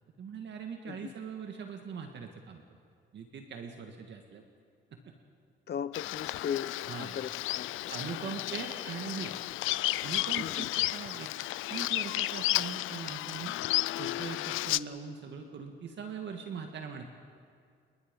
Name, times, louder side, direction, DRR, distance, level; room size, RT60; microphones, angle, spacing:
voice 1, 0.2-2.6 3.1-4.4 4.9-5.0 6.9-7.2 7.9-9.4 10.0-11.3 11.7-13.5 14.0-17.0, right 6 dB, 65° right, 4 dB, 2.0 m, -41 dB
voice 2, 5.7-7.8 8.2-8.6 10.4-10.7, left 8 dB, 55° left, 14 dB, 1.0 m, -38 dB
Bird vocalization bird call bird song, 5.9-14.8, left 16 dB, 85° left, 0.5 m, -33 dB
28.0 x 22.0 x 5.4 m, 2.2 s
cardioid pair, 90°, 20 cm